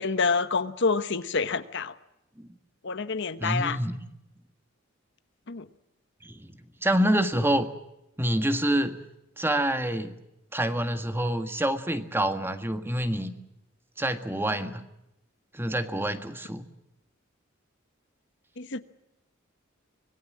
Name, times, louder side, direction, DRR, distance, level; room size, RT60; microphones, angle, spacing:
voice 1, 0.0-1.9 2.8-3.8 5.5-5.7 18.6-18.8, left 4 dB, 60° left, 12 dB, 1.1 m, -27 dB
voice 2, 3.4-4.0 6.2-6.6 6.8-7.7 8.2-9.0 9.4-10.2 10.5-13.3 14.0-14.8 15.5-16.7, right 1 dB, 10° right, 8 dB, 1.6 m, -27 dB
25.5 x 20.0 x 7.5 m, 0.89 s
head